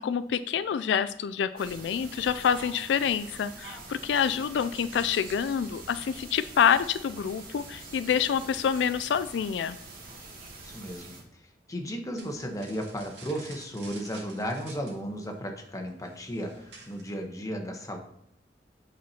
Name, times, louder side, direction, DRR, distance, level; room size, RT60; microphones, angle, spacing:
voice 1, 0.0-9.8, left 7 dB, 85° left, 13 dB, 0.3 m, -27 dB
sound 1, 1.6-11.2, right 2 dB, 60° right, 2.0 m, -45 dB
voice 2, 10.6-11.2 11.7-18.0, equal, 20° left, 3 dB, 1.1 m, -35 dB
sound 2, 12.2-17.3, right 3 dB, 75° right, 2.0 m, -50 dB
8.5 x 4.4 x 4.2 m, 0.76 s
head